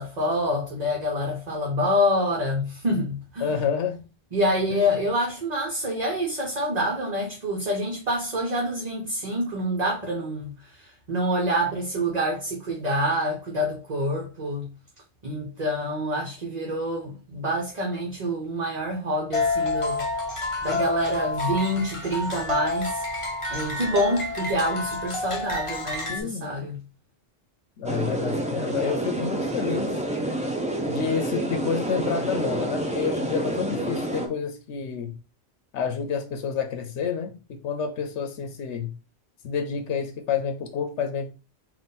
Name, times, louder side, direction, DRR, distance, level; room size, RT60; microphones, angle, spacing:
voice 1, 0.0-3.5 4.3-14.7 15.2-20.0 20.6-23.0 23.5-26.8, equal, 40° right, 0.9 m, -27 dB
voice 2, 3.4-4.0 4.7-5.0 26.1-26.6 27.8-29.9 30.8-35.1 35.7-38.9 39.4-41.3, left 6 dB, 85° left, 0.9 m, -29 dB
sound 1, 19.3-26.2, left 3 dB, 30° left, 0.8 m, -28 dB
sound 2, 27.8-34.3, right 1 dB, 10° right, 0.4 m, -28 dB
3.8 x 2.5 x 4.0 m
omnidirectional pair, 1.1 m